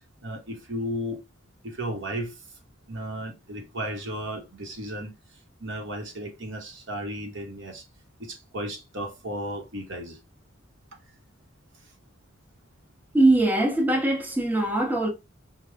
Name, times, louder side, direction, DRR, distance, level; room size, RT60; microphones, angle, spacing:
voice 1, 0.2-1.2 1.6-2.4 2.9-7.9 8.2-10.2 11.8-11.9, equal, 65° right, 1.2 m, -34 dB
voice 2, 13.1-15.1, right 2 dB, 10° right, 1.1 m, -21 dB
4.8 x 2.4 x 3.4 m
head